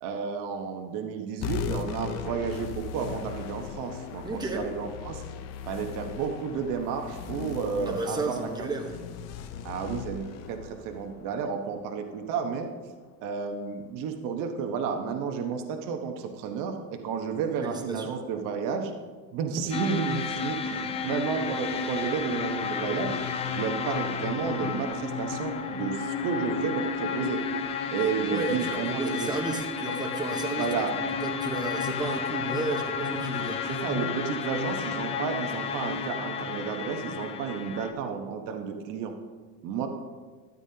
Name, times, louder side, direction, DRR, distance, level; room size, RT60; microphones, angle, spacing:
voice 1, 0.0-5.2 5.7-8.7 9.6-12.7 13.2-18.9 19.3-23.2 23.5-27.4 27.9-29.3 30.6-31.0 33.7-39.1 39.6-39.9, right 6 dB, 50° right, 4 dB, 1.1 m, -32 dB
sound 1, 1.4-12.3, left 7 dB, 40° left, 0.7 m, -38 dB
voice 2, 4.2-4.6 7.9-9.0 17.6-18.1 21.0-21.1 28.3-30.7 31.2-33.8, right 3 dB, 10° right, 2 dB, 1.1 m, -33 dB
sound 2, 19.7-37.9, left 6 dB, 15° left, 0.3 m, -32 dB
13.0 x 9.5 x 2.8 m, 1.4 s
supercardioid pair, 125°, 43 cm